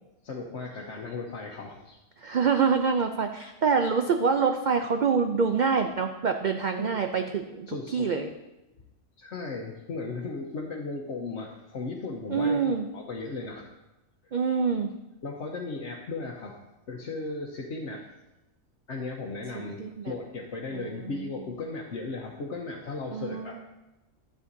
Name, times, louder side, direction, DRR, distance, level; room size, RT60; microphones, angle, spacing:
voice 1, 0.2-2.0 6.8-7.0 7.7-8.1 9.2-13.7 15.2-16.6 16.9-18.1 18.9-23.5, left 3 dB, 60° left, -2 dB, 1.2 m, -36 dB
voice 2, 2.2-7.7 7.9-8.3 12.3-12.9 14.3-14.9 19.8-20.1 20.7-21.1 23.1-23.6, right 5 dB, 70° right, 6 dB, 0.4 m, -26 dB
12.5 x 7.5 x 2.7 m, 1.0 s
omnidirectional pair, 1.4 m